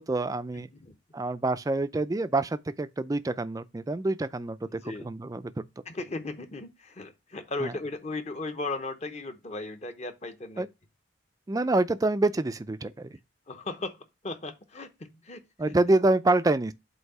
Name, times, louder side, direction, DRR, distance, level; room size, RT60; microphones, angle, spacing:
voice 1, 0.0-0.7 1.1-5.6 7.6-7.7 10.6-10.7 11.5-13.2 15.6-16.7, right 2 dB, 20° right, 0.3 m, -27 dB
voice 2, 4.7-5.1 5.9-10.7 13.5-15.4 15.7-15.8, left 2 dB, 35° left, 0.8 m, -36 dB
8.0 x 2.8 x 5.4 m
head